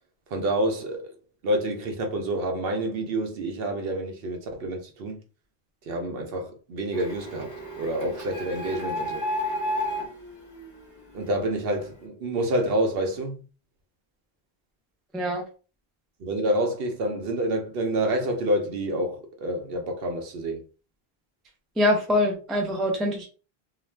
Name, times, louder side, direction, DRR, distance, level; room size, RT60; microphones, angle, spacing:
voice 1, 0.3-1.2 1.4-5.2 5.9-9.2 11.1-13.4 16.2-20.6, right 1 dB, 65° right, 0.8 m, -28 dB
Printer, 6.9-11.5, equal, 20° left, 0.8 m, -32 dB
voice 2, 21.8-23.3, left 1 dB, ahead, 0.3 m, -24 dB
2.4 x 2.1 x 3.2 m
omnidirectional pair, 1.1 m